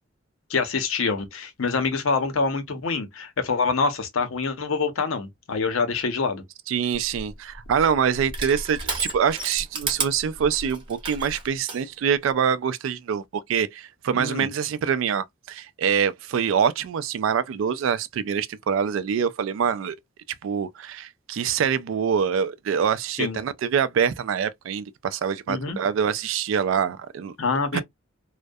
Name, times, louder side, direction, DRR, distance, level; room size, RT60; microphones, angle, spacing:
voice 1, 0.5-6.4 14.1-14.5 23.2-23.4 25.5-25.8 27.4-27.8, left 4 dB, 90° left, 0.7 m, -25 dB
voice 2, 6.7-20.0 20.4-27.3 27.7-27.8, right 7 dB, 75° right, 0.3 m, -25 dB
Crushing, 6.9-11.8, right 3 dB, 25° right, 0.8 m, -33 dB
2.3 x 2.1 x 2.5 m
head